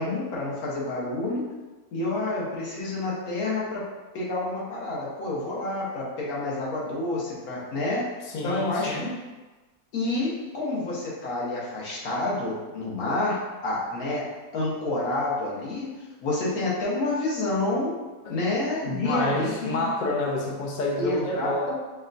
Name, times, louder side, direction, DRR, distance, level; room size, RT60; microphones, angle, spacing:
voice 1, 0.0-1.4 1.9-3.9 4.1-8.1 8.4-9.2 9.9-14.3 14.5-15.9 16.2-17.9 18.3-19.8 21.0-21.8, left 2 dB, 70° left, -6 dB, 1.5 m, -28 dB
voice 2, 8.2-9.2 18.2-18.3 18.8-21.8, left 2 dB, 85° left, -1 dB, 0.4 m, -28 dB
5.5 x 2.3 x 2.6 m, 1.2 s
omnidirectional pair, 1.7 m